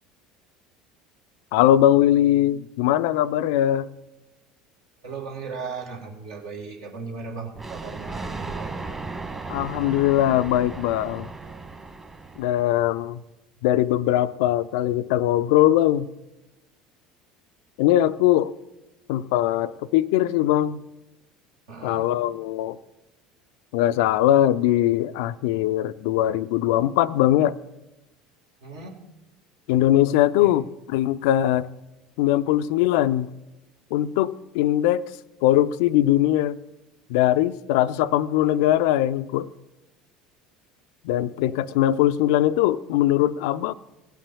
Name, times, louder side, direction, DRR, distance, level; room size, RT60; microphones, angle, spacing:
voice 1, 1.5-3.9 9.5-11.3 12.4-13.2 13.6-16.1 17.8-18.5 19.1-20.8 21.8-22.8 23.7-27.6 29.7-31.7 32.2-33.3 33.9-35.1 35.4-36.6 37.1-39.5 41.0-43.7, left 13 dB, 65° left, 15 dB, 0.4 m, -21 dB
voice 2, 5.0-8.7 21.7-22.1 28.6-29.1 30.4-30.5, right 4 dB, 70° right, 1 dB, 1.9 m, -37 dB
Thunder, 7.6-12.9, right 3 dB, 15° right, 1.3 m, -36 dB
16.0 x 5.8 x 6.9 m, 1.0 s
figure-of-eight pair, 65°, 2 cm